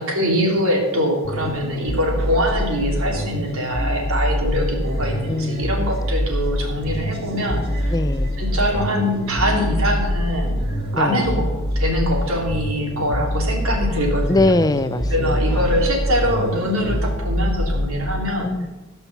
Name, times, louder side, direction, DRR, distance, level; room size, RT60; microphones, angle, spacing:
voice 1, 0.0-7.9 8.4-11.5 11.7-14.5 15.1-18.5, equal, 80° right, 1 dB, 3.0 m, -23 dB
sound 1, 0.8-17.1, equal, 50° right, 3.1 m, -40 dB
sound 2, 1.2-18.1, equal, 40° left, 1.6 m, -25 dB
voice 2, 5.3-5.9 7.9-8.4 10.9-11.3 14.3-15.7 18.4-18.7, left 2 dB, 20° left, 13 dB, 0.4 m, -22 dB
16.0 x 5.6 x 7.2 m, 1.1 s
head